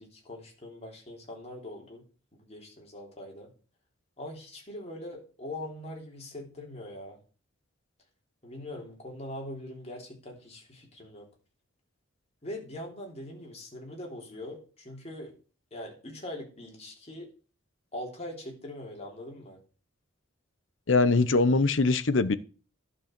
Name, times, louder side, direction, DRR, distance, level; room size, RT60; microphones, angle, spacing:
voice 1, 0.0-2.0 2.4-3.5 4.2-7.2 8.4-11.3 12.4-15.3 15.7-17.3 17.9-19.6, left 1 dB, 30° left, 3.4 m, -42 dB
voice 2, 20.9-22.4, left 3 dB, 70° left, 0.8 m, -22 dB
11.5 x 5.5 x 6.6 m
head